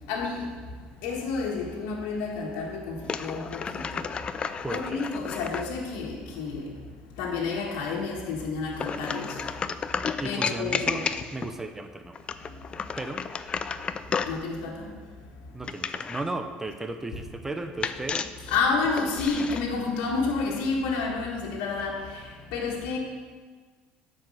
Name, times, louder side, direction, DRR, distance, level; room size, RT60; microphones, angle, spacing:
voice 1, 0.1-4.1 4.7-6.7 7.2-9.4 10.1-11.0 12.8-12.9 14.2-14.9 17.1-17.2 18.5-23.0, left 4 dB, 80° left, -3 dB, 1.6 m, -30 dB
sound 1, 3.0-5.7 8.7-11.5 12.1-14.4 15.6-16.3 17.8-19.6, left 6 dB, 30° left, 0.4 m, -32 dB
voice 2, 4.6-5.0 10.2-11.0 11.3-12.2 13.0-13.2 15.5-18.3, right 2 dB, 10° right, 6 dB, 0.7 m, -35 dB
9.2 x 4.8 x 6.4 m, 1.5 s
supercardioid pair, 105°, 3 cm